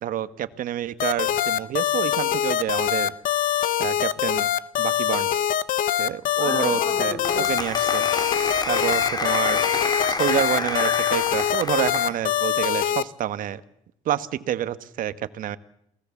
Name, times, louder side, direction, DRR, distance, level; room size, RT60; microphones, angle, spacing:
voice 1, 0.0-3.1 3.8-4.5 4.8-5.6 6.0-8.1 8.7-9.6 10.1-13.6 14.0-15.6, right 11 dB, 65° right, 13 dB, 1.3 m, -28 dB
sound 1, 1.0-13.0, left 11 dB, 70° left, 1.1 m, -23 dB
Applause, 6.4-12.2, left 3 dB, 25° left, 2.7 m, -29 dB
28.0 x 18.5 x 7.3 m, 0.76 s
supercardioid pair, 85°, 15 cm